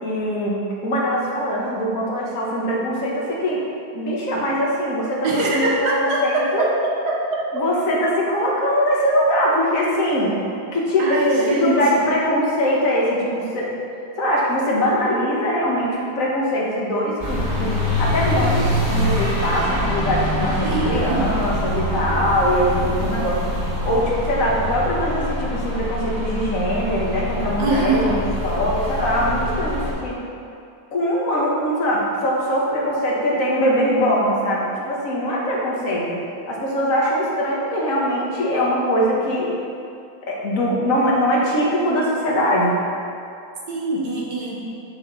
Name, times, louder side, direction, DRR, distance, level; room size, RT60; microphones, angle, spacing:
voice 1, 0.0-3.6 3.9-6.7 7.5-10.4 10.7-13.7 14.2-23.4 23.8-30.2 30.9-36.2 36.5-39.5 40.3-42.8, equal, 50° left, -4 dB, 1.9 m, -22 dB
voice 2, 5.2-7.6 11.0-11.8 20.6-21.3 27.6-28.1 43.7-44.6, right 2 dB, 70° right, -4 dB, 2.0 m, -23 dB
sound 1, 17.2-29.9, left 1 dB, 30° right, 2.3 m, -24 dB
6.9 x 6.6 x 5.5 m, 2.5 s
omnidirectional pair, 1.8 m